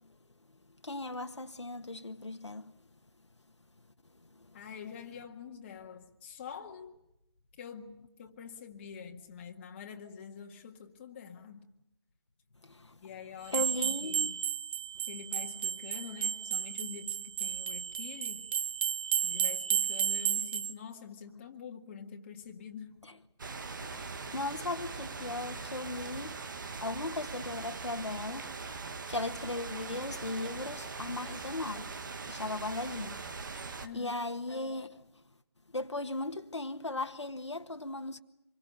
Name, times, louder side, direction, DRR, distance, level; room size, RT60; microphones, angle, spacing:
voice 1, 0.8-2.7 12.6-12.9 13.5-14.3 23.9-26.4 26.8-28.7 29.1-31.9 32.3-33.2 33.9-35.0 35.7-38.2, left 2 dB, 85° left, 1.6 m, -37 dB
voice 2, 4.5-6.9 7.6-11.7 13.0-14.4 15.1-18.5 19.2-23.0 33.8-34.3, left 7 dB, 25° left, 1.9 m, -46 dB
sound 1, 13.5-20.7, right 9 dB, 25° right, 1.1 m, -33 dB
sound 2, 23.4-33.9, right 4 dB, 45° right, 1.7 m, -41 dB
26.5 x 22.5 x 6.8 m
figure-of-eight pair, 155°, 14 cm